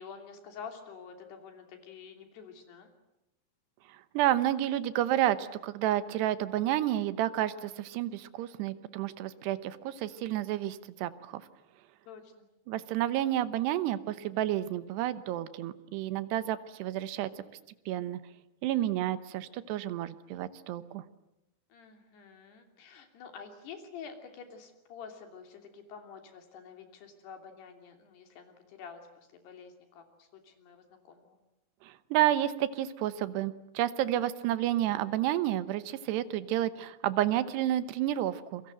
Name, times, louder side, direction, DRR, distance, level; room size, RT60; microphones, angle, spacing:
voice 1, 0.0-2.9 12.1-12.5 21.7-31.4, left 6 dB, 80° left, 5 dB, 5.0 m, -48 dB
voice 2, 4.1-11.4 12.7-17.3 17.9-18.2 18.6-21.0 31.8-38.6, right 13 dB, 85° right, 13 dB, 3.2 m, -30 dB
29.0 x 23.5 x 7.8 m, 0.91 s
omnidirectional pair, 4.7 m